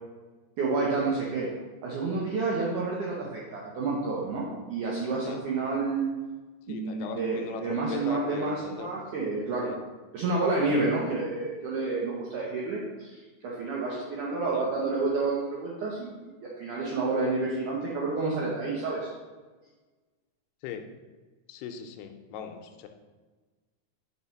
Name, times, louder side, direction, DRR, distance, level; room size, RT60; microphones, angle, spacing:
voice 1, 0.6-1.5 1.8-6.1 6.7-9.7 10.1-19.1, right 3 dB, 75° right, -4 dB, 1.9 m, -29 dB
voice 2, 6.7-8.9 9.6-9.8 14.5-14.7 20.6-20.9 21.5-22.9, left 8 dB, 80° left, 6 dB, 2.5 m, -39 dB
5.7 x 4.7 x 5.6 m, 1.3 s
omnidirectional pair, 4.8 m